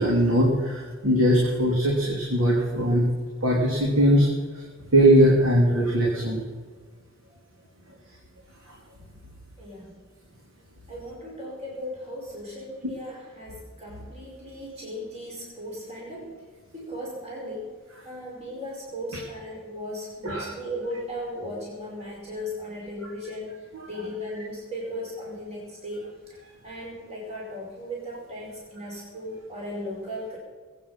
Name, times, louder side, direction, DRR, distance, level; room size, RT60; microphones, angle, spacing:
voice 1, 0.0-3.0 3.4-4.3 4.9-6.4 20.2-20.5, equal, 85° right, -3 dB, 3.1 m, -20 dB
voice 2, 9.6-10.0 10.9-16.3 16.7-17.7 18.0-23.5 23.9-26.4 26.6-30.4, equal, 35° right, -3 dB, 4.9 m, -37 dB
21.5 x 9.4 x 5.7 m, 1.5 s
head